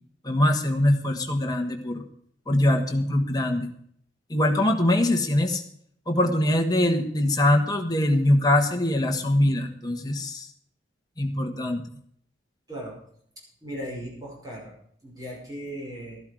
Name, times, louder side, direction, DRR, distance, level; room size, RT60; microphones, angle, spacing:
voice 1, 0.2-2.0 2.5-3.7 4.3-5.6 6.1-10.5 11.2-11.8, left 1 dB, 20° left, 3 dB, 1.4 m, -23 dB
voice 2, 13.6-14.7 15.0-16.2, equal, 20° right, -3 dB, 5.2 m, -37 dB
12.5 x 11.5 x 4.9 m, 0.65 s
head